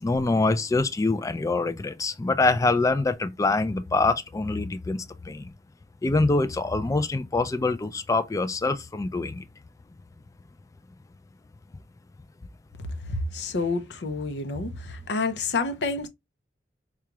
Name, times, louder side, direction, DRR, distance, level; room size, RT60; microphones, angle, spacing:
voice 1, 0.0-5.0 5.3-5.5 6.0-9.4, left 3 dB, 20° left, 0.3 m, -25 dB
voice 2, 13.1-16.1, left 3 dB, 75° left, 0.6 m, -29 dB
4.8 x 2.4 x 2.9 m
head